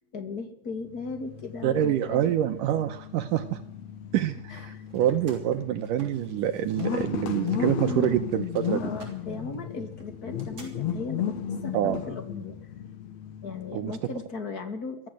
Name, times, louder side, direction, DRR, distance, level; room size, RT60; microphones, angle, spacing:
voice 1, 0.1-2.3 4.5-4.8 8.8-12.6 13.4-15.1, left 4 dB, 30° left, 7 dB, 2.5 m, -37 dB
sound 1, 0.9-14.2, left 7 dB, 55° left, 2.5 m, -35 dB
voice 2, 1.6-3.6 4.1-8.8 11.7-12.0 13.7-14.0, right 11 dB, 75° right, 9 dB, 2.4 m, -26 dB
sound 2, 4.5-7.1 7.3-10.7, right 2 dB, 30° right, 5.6 m, -52 dB
23.5 x 14.0 x 7.8 m, 0.74 s
omnidirectional pair, 4.1 m